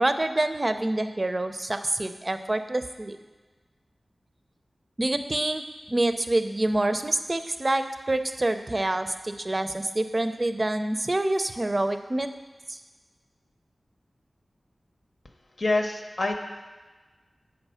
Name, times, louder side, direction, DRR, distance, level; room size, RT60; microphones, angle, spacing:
voice 1, 0.0-3.2 5.0-5.6 5.9-12.3 12.7-12.8, right 2 dB, 40° right, 8 dB, 0.6 m, -26 dB
voice 2, 15.6-16.4, left 2 dB, 60° left, 2 dB, 0.9 m, -26 dB
8.0 x 5.3 x 5.6 m, 1.3 s
cardioid pair, 50°, 0 cm